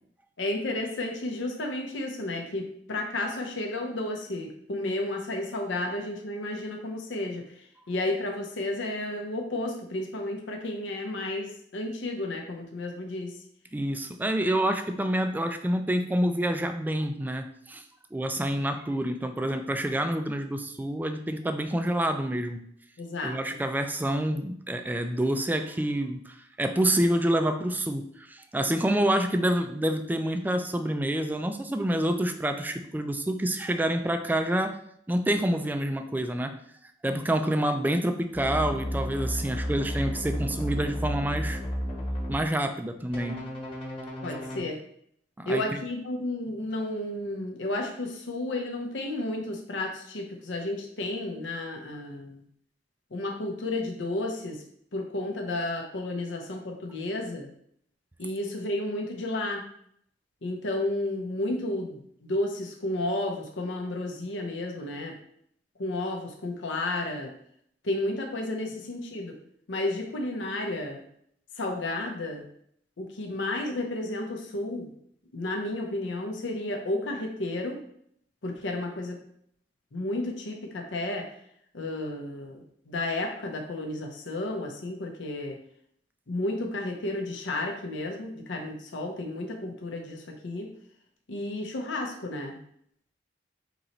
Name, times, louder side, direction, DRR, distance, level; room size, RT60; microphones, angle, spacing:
voice 1, 0.4-13.4 23.0-23.4 44.2-44.8 45.5-52.4 53.1-54.6 54.9-57.5 58.2-59.6 60.4-65.2 65.8-67.3 67.8-69.3 69.7-71.0 71.5-72.4 73.0-74.9 75.3-77.8 78.4-79.2 79.9-81.3 81.7-85.6 86.3-90.7 91.3-92.6, left 2 dB, 80° left, 2 dB, 0.7 m, -32 dB
voice 2, 13.7-17.8 18.1-22.6 23.2-34.8 35.1-36.5 37.0-41.6 42.3-43.4 45.4-45.6, right 1 dB, 10° right, 7 dB, 0.3 m, -27 dB
sound 1, 38.3-42.3 43.1-44.6, equal, 30° left, 1.3 m, -32 dB
3.8 x 3.0 x 4.2 m, 0.67 s
head